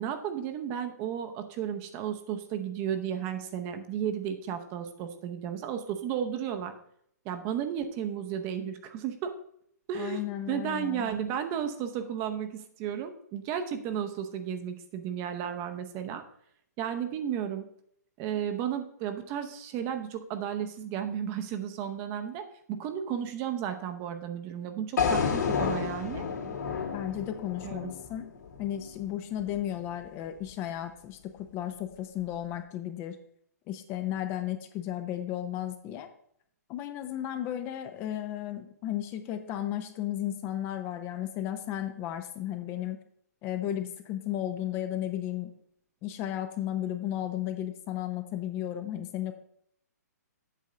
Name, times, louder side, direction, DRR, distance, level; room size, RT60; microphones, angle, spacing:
voice 1, 0.0-6.7 7.2-9.3 9.9-16.2 16.8-17.6 18.2-26.2 27.6-27.9, right 9 dB, 30° right, 7 dB, 0.8 m, -33 dB
voice 2, 9.9-11.1 26.9-28.3 28.6-33.2 33.7-36.1 36.7-43.0 43.4-45.5 46.0-49.4, left 12 dB, 25° left, 8 dB, 0.6 m, -34 dB
sound 1, 25.0-29.1, left 6 dB, 70° left, 2.6 m, -30 dB
8.3 x 3.7 x 6.7 m, 0.69 s
hypercardioid pair, 140°, 9 cm